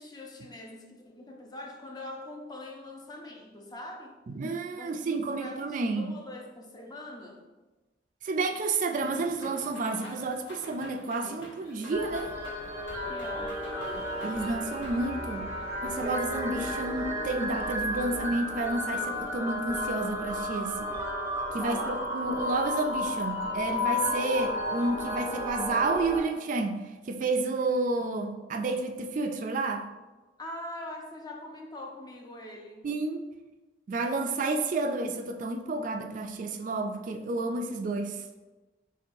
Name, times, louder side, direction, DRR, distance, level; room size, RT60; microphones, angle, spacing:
voice 1, 0.0-4.1 4.8-7.4 13.1-13.6 21.6-22.0 30.4-32.9, left 1 dB, 25° left, 1 dB, 0.5 m, -43 dB
voice 2, 4.3-6.1 8.2-12.3 14.2-15.5 15.8-20.9 21.5-26.8 27.1-29.9 32.8-33.3 33.9-38.2, right 3 dB, 45° right, 5 dB, 0.3 m, -30 dB
sound 1, 9.0-15.0, left 1 dB, 80° left, 1.1 m, -47 dB
sound 2, 11.9-26.2, left 1 dB, 15° right, 0.6 m, -33 dB
sound 3, 13.8-19.3, equal, 60° left, 0.8 m, -47 dB
4.5 x 3.6 x 2.5 m, 1.2 s
head